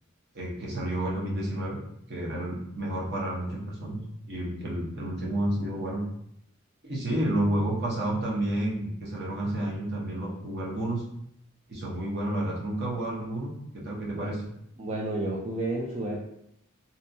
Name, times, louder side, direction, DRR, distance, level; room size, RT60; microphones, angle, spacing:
voice 1, 0.3-1.8 2.1-4.0 4.3-6.0 6.8-11.0 11.7-14.4, right 1 dB, 55° right, -3 dB, 0.8 m, -30 dB
voice 2, 14.8-16.2, right 2 dB, 30° right, -5 dB, 0.4 m, -31 dB
2.7 x 2.2 x 2.6 m, 0.74 s
head